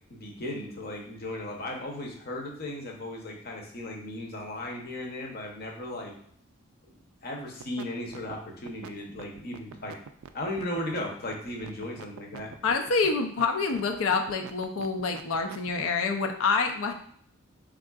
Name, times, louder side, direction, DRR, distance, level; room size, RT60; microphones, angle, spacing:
voice 1, 0.1-6.1 7.2-10.0 10.3-12.5, left 1 dB, 45° left, 0 dB, 0.7 m, -36 dB
sound 1, 7.5-7.8 8.1-16.0, right 7 dB, 80° right, 0.3 m, -44 dB
voice 2, 12.6-16.9, left 4 dB, 80° left, 5 dB, 0.5 m, -27 dB
3.6 x 3.6 x 2.3 m, 0.63 s
head